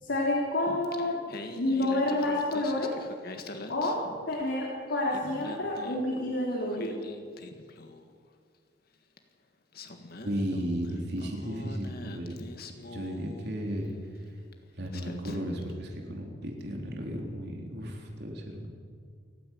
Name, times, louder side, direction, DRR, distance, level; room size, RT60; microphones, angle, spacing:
voice 1, 0.0-1.2 1.5-2.9 3.7-4.0 4.3-7.0, left 1 dB, 80° left, -3 dB, 3.5 m, -29 dB
Singing, 0.7-4.6 4.9-8.2 9.2-9.3 9.7-13.9 14.5-14.6 14.9-15.7, left 2 dB, 55° left, 1.7 m, -45 dB
voice 2, 10.1-12.4 12.9-13.9 14.8-18.7, equal, 65° right, 1 dB, 3.6 m, -34 dB
29.0 x 10.0 x 9.3 m, 2.1 s
head